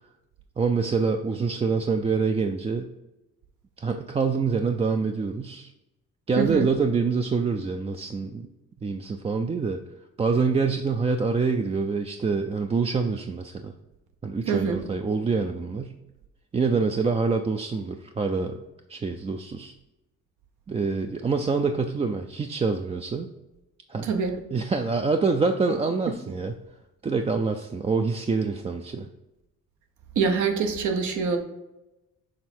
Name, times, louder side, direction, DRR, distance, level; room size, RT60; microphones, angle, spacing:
voice 1, 0.6-2.9 3.8-5.7 6.3-8.5 8.8-9.8 10.2-13.7 14.2-16.0 16.5-18.6 18.9-19.7 20.7-23.3 23.9-24.1 24.5-26.5 27.0-29.1, right 4 dB, 20° right, 5 dB, 0.4 m, -26 dB
voice 2, 6.4-6.7 14.5-14.8 24.0-24.4 30.1-31.4, right 5 dB, 75° right, 4 dB, 0.9 m, -24 dB
6.5 x 3.4 x 4.3 m, 0.98 s
cardioid pair, 90°, 30 cm